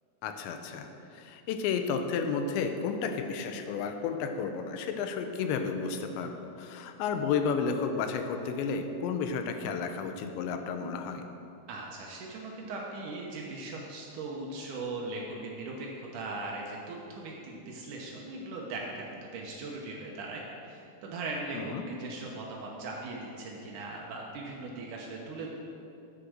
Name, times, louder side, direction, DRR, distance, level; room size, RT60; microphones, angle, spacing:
voice 1, 0.2-11.2 21.5-21.9, left 5 dB, 85° left, 7 dB, 3.0 m, -32 dB
voice 2, 11.7-25.5, right 2 dB, 85° right, -2 dB, 1.7 m, -39 dB
10.0 x 8.5 x 6.3 m, 2.7 s
omnidirectional pair, 5.1 m